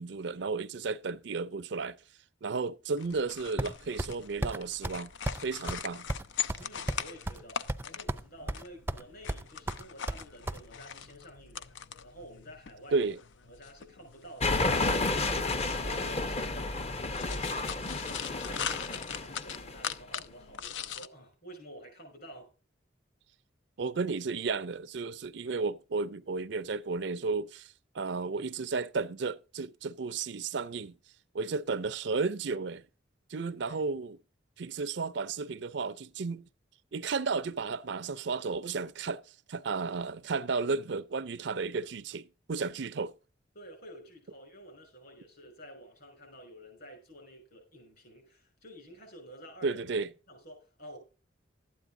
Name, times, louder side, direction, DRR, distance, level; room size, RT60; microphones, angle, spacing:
voice 1, 0.0-2.0 2.4-5.1 5.4-6.1 12.9-13.2 23.8-30.9 31.3-32.8 33.3-34.2 34.6-36.5 36.9-39.2 39.5-43.1 49.6-50.1, right 4 dB, 65° right, 0.5 m, -33 dB
sound 1, 3.0-21.1, left 8 dB, 75° left, 0.6 m, -42 dB
sound 2, 3.6-4.1 4.4-4.6 4.8-5.0 5.3-5.4 5.7-5.8 6.1-7.4 7.7-8.2 8.5-9.0 9.3-10.6, right 1 dB, 10° right, 0.5 m, -33 dB
voice 2, 6.6-11.8 12.0-13.1 13.4-16.8 17.0-22.5 33.6-33.8 43.5-49.8 50.3-51.0, equal, 55° left, 5.8 m, -50 dB
sound 3, 14.4-19.9, left 2 dB, 35° left, 0.8 m, -31 dB
12.5 x 9.2 x 3.7 m
head